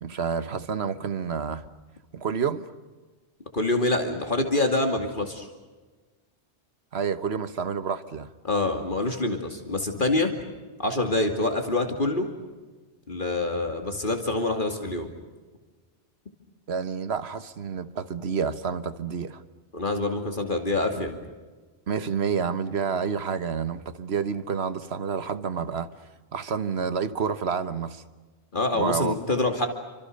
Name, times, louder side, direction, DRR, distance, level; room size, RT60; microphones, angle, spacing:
voice 1, 0.0-1.6 2.1-2.6 6.9-8.3 16.7-19.4 21.9-25.9 26.3-28.0 28.7-29.2, right 6 dB, 70° right, 1.5 m, -29 dB
voice 2, 3.5-5.5 8.4-10.3 10.8-12.3 13.1-15.1 19.7-21.2 28.5-29.7, left 2 dB, 45° left, 2.7 m, -26 dB
29.5 x 25.5 x 6.7 m
omnidirectional pair, 1.2 m